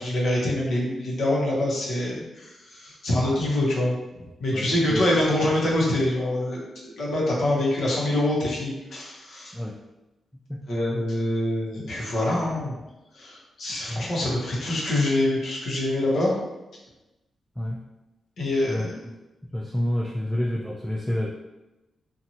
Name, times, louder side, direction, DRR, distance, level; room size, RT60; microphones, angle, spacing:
voice 1, 0.0-3.9 4.4-9.5 10.7-12.7 13.1-16.3 18.4-18.9, left 1 dB, 75° left, -5 dB, 1.0 m, -25 dB
voice 2, 4.5-5.1 5.4-5.5 9.5-9.8 10.5-10.6 13.9-14.1 17.6-17.8 18.7-18.9 19.4-21.3, equal, 5° left, -2 dB, 0.3 m, -28 dB
2.7 x 2.5 x 2.9 m, 1.0 s
cardioid pair, 80°, 0 cm